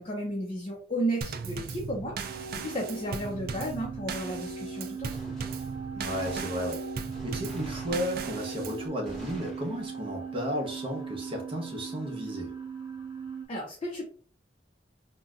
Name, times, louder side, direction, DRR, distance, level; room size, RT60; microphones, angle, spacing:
voice 1, 0.0-5.4 13.5-14.1, right 1 dB, 35° left, -1 dB, 0.5 m, -34 dB
Drum kit / Snare drum / Bass drum, 1.2-8.9, right 4 dB, 55° right, 0.3 m, -38 dB
sound 1, 2.3-13.5, right 6 dB, 15° right, 1.2 m, -39 dB
Gunshot gunfire, 5.1-8.6 9.0-10.1, equal, 5° left, 0.9 m, -47 dB
voice 2, 5.9-6.8 7.2-12.5, equal, 30° right, 0 dB, 0.9 m, -34 dB
4.0 x 2.1 x 2.4 m, 0.42 s
head